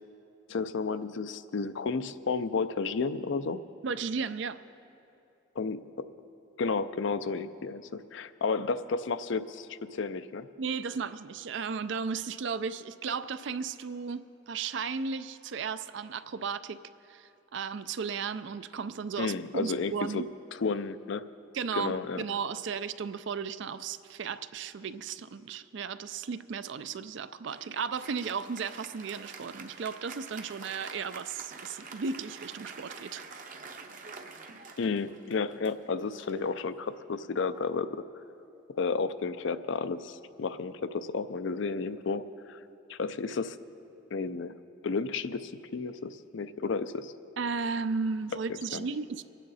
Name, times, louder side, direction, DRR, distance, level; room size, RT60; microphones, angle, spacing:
voice 1, 0.5-3.6 5.6-6.1 6.6-10.5 19.2-20.3 20.6-21.3 21.7-22.2 34.8-38.0 38.8-42.6 42.9-43.6 44.1-44.5 44.8-47.1 48.5-48.9, left 4 dB, 65° left, 13 dB, 0.5 m, -32 dB
voice 2, 3.8-4.6 10.6-16.8 17.1-20.3 21.5-33.3 47.4-49.2, right 5 dB, 60° right, 13 dB, 0.4 m, -35 dB
Applause, 27.5-37.3, right 4 dB, 40° right, 0.8 m, -47 dB
24.5 x 9.2 x 4.1 m, 2.8 s
head